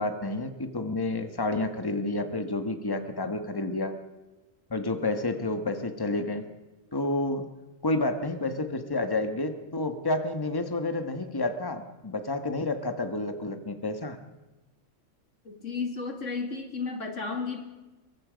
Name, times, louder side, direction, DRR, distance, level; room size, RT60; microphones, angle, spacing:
voice 1, 0.0-4.0 4.7-6.5 6.9-7.5 7.8-14.2, left 2 dB, 20° left, 8 dB, 1.5 m, -30 dB
voice 2, 15.4-17.7, left 4 dB, 85° left, 5 dB, 2.9 m, -33 dB
25.0 x 22.5 x 5.2 m, 1.1 s
omnidirectional pair, 1.3 m